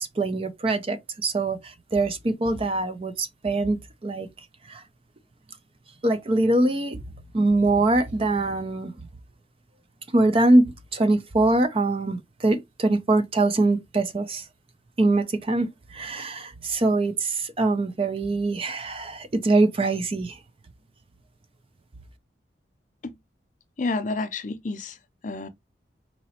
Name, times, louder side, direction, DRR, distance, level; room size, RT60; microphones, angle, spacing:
voice 1, 0.2-3.8 4.0-4.3 4.7-4.8 6.0-7.0 7.3-8.9 10.1-14.4 15.0-20.4, right 2 dB, 30° right, 0.5 m, -23 dB
voice 2, 23.8-25.0 25.2-25.5, left 3 dB, 45° left, 0.5 m, -29 dB
4.1 x 2.9 x 2.8 m
head